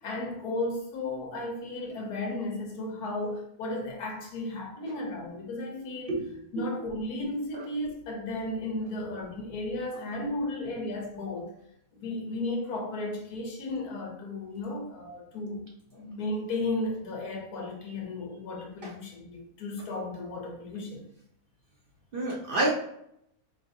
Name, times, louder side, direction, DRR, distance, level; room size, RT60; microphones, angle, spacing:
voice 1, 0.0-6.2 6.5-11.5 11.9-15.7 15.9-21.1, left 2 dB, 75° left, 1.4 m, -34 dB
voice 2, 6.1-6.8 18.8-18.9 22.1-22.7, right 2 dB, 55° right, 0.6 m, -29 dB
3.9 x 3.3 x 2.6 m
omnidirectional pair, 1.6 m